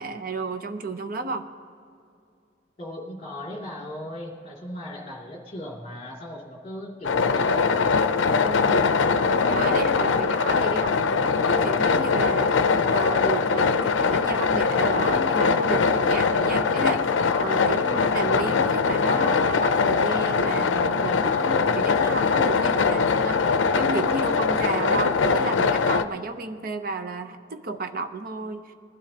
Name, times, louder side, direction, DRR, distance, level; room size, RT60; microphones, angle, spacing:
voice 1, 0.0-1.4 8.3-8.9 9.4-12.5 12.9-23.4 23.7-28.7, right 3 dB, 50° right, 8 dB, 0.7 m, -32 dB
voice 2, 2.8-8.0, left 1 dB, 30° left, -2 dB, 2.5 m, -37 dB
sound 1, 7.0-26.0, left 5 dB, 80° left, 0.5 m, -22 dB
20.5 x 12.0 x 2.9 m, 2.4 s
head